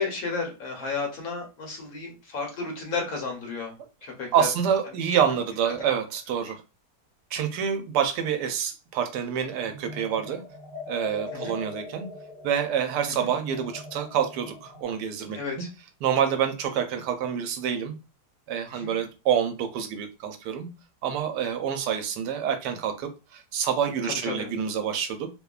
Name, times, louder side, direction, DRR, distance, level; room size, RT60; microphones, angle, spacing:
voice 1, 0.0-3.7 4.0-4.5 11.3-11.6 13.1-13.3 15.3-15.7 18.7-18.9 24.0-24.5, left 4 dB, 65° left, 1 dB, 1.2 m, -32 dB
voice 2, 4.3-6.6 7.3-10.4 10.9-12.1 12.4-15.7 16.0-17.9 18.5-20.7 21.0-25.3, right 8 dB, 85° right, 6 dB, 1.2 m, -27 dB
sound 1, 9.5-14.8, left 3 dB, 50° right, 0.7 m, -41 dB
2.9 x 2.1 x 2.3 m, 0.29 s
omnidirectional pair, 1.8 m